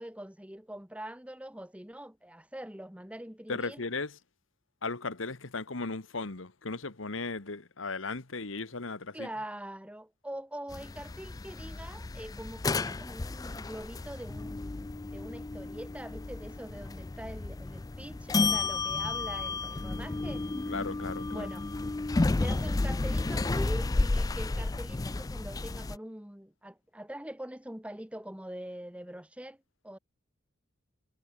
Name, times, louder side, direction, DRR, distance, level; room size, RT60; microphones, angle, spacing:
voice 1, 0.0-3.9 9.1-20.5 21.3-21.6 22.4-30.0, right 1 dB, 5° right, 1.4 m, -43 dB
voice 2, 3.5-4.2 4.8-9.3 20.7-21.5, left 3 dB, 80° left, 1.6 m, -36 dB
sound 1, 10.7-26.0, left 3 dB, 20° left, 0.3 m, -32 dB
head